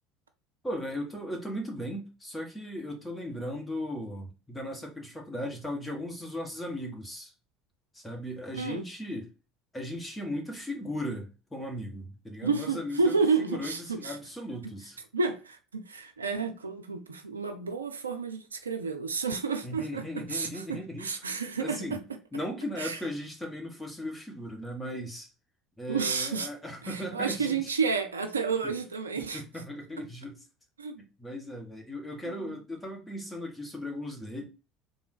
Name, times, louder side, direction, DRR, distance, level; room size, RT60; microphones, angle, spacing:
voice 1, 0.6-7.3 7.9-9.3 9.7-13.2 13.5-15.0 19.6-22.0 22.3-25.3 25.8-27.7 28.6-28.8 29.2-30.4 31.0-34.5, left 1 dB, 10° left, 1.6 m, -37 dB
voice 2, 8.5-8.9 12.4-14.2 15.1-22.2 22.8-23.0 25.9-26.5 26.8-29.4 30.8-31.0 32.2-32.6, right 4 dB, 80° right, 0.5 m, -31 dB
3.8 x 2.6 x 4.8 m
figure-of-eight pair, 65°, 0 cm